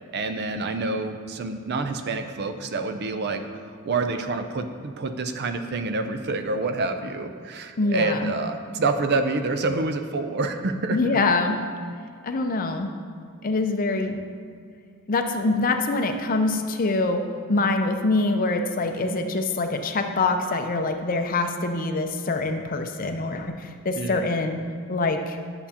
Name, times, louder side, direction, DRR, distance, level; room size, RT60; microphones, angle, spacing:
voice 1, 0.1-11.0 24.0-24.3, right 3 dB, 50° right, 8 dB, 0.5 m, -27 dB
voice 2, 7.8-8.3 10.9-11.6 12.2-12.9 13.4-14.2 15.1-24.6 24.9-25.4, left 3 dB, 40° left, 5 dB, 0.5 m, -24 dB
10.5 x 6.8 x 2.9 m, 2.2 s
head